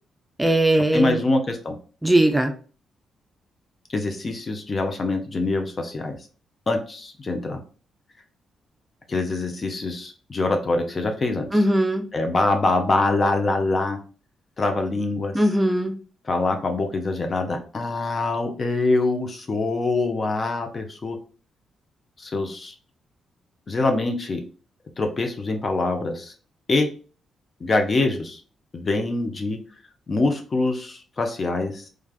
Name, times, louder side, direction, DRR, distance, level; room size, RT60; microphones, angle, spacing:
voice 1, 0.4-1.2 2.0-2.5 11.5-12.0 15.3-15.9, right 1 dB, 15° right, 5 dB, 0.6 m, -19 dB
voice 2, 0.9-1.7 3.9-6.2 6.7-7.6 9.1-11.5 12.1-14.0 14.6-15.3 16.3-21.2 22.2-22.7 23.7-24.4 25.0-26.3 26.7-26.9 27.6-28.4 28.7-29.6 30.1-31.8, left 2 dB, 45° left, 5 dB, 0.6 m, -24 dB
3.3 x 2.4 x 2.3 m, 0.38 s
hypercardioid pair, 45°, 0 cm